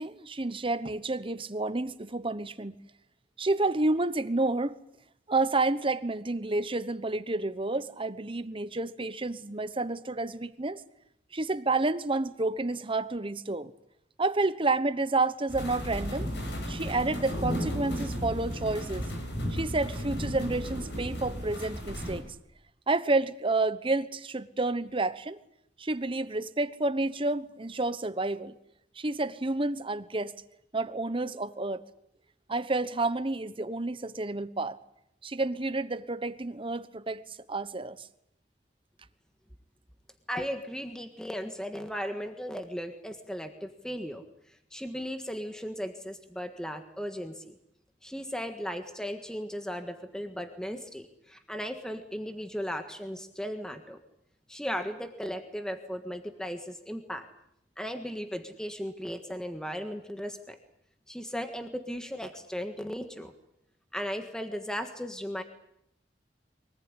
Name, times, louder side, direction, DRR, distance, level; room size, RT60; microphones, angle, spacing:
voice 1, 0.0-2.8 3.4-4.8 5.3-10.8 11.3-13.7 14.2-16.3 16.7-19.1 19.5-22.3 22.9-25.4 25.8-28.6 29.0-30.3 30.7-31.8 32.5-34.8 35.2-38.1, right 2 dB, 30° right, 1.1 m, -30 dB
sound 1, 15.5-22.2, equal, 75° left, 6.9 m, -34 dB
voice 2, 40.3-44.3 44.7-47.6 48.0-54.0 54.5-57.3 57.8-60.6 61.1-63.3 63.9-65.4, equal, 5° left, 1.6 m, -36 dB
24.5 x 19.0 x 9.8 m
head